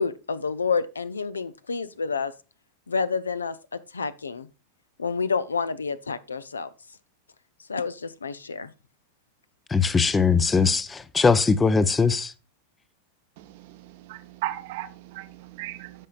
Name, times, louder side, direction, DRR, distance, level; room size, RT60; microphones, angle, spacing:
voice 1, 0.0-2.3 2.9-4.5 5.0-6.7 7.7-8.7, left 5 dB, 75° left, 0.5 m, -29 dB
voice 2, 9.7-12.3, left 5 dB, 15° left, 0.6 m, -21 dB
voice 3, 13.4-16.1, right 15 dB, 50° right, 0.8 m, -37 dB
14.0 x 5.3 x 2.4 m
figure-of-eight pair, 90°, 0 cm